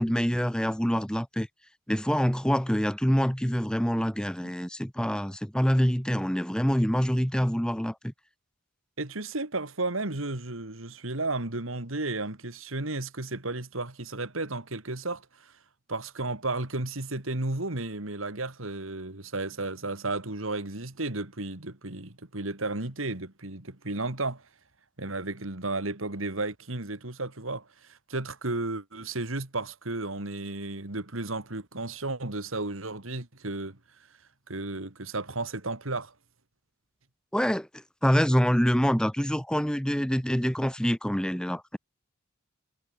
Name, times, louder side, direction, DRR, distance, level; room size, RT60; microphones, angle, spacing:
voice 1, 0.0-1.5 1.9-8.1 37.3-41.8, equal, 5° left, 1.3 m, -26 dB
voice 2, 9.0-15.5 15.9-24.4 25.0-33.8 34.5-36.1, right 2 dB, 75° right, 2.7 m, -33 dB
head